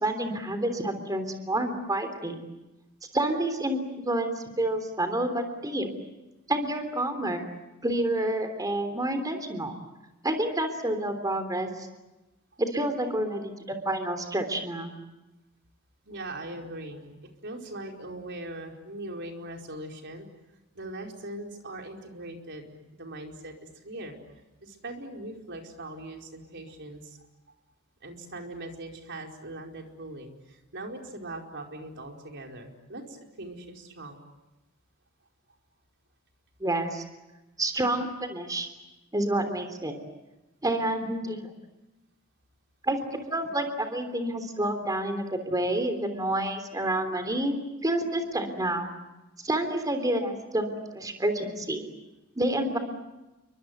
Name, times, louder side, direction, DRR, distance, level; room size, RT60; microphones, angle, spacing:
voice 1, 0.0-2.4 3.1-5.9 6.5-7.4 7.8-9.7 10.2-11.9 12.6-14.9 36.6-37.0 37.6-38.7 39.1-40.0 40.6-41.5 42.8-43.0 43.3-47.6 47.8-48.9 49.4-51.9 52.3-52.8, right 1 dB, 15° right, 7 dB, 3.4 m, -29 dB
voice 2, 16.0-20.3 20.7-27.3 28.0-34.2, right 1 dB, 55° right, 2 dB, 4.8 m, -41 dB
29.5 x 24.5 x 8.1 m, 1.0 s
head